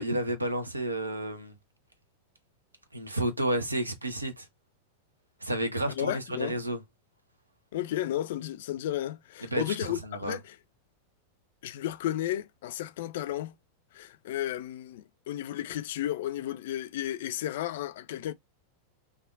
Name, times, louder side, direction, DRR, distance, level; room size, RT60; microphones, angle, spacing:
voice 1, 0.0-1.5 2.9-4.5 5.4-6.8 9.5-9.6 10.0-10.4, right 1 dB, 80° right, 0.5 m, -31 dB
voice 2, 5.9-6.6 7.7-10.6 11.6-13.5 13.9-18.3, left 12 dB, 55° left, 0.3 m, -33 dB
3.4 x 2.3 x 2.2 m
figure-of-eight pair, 90°, 0 cm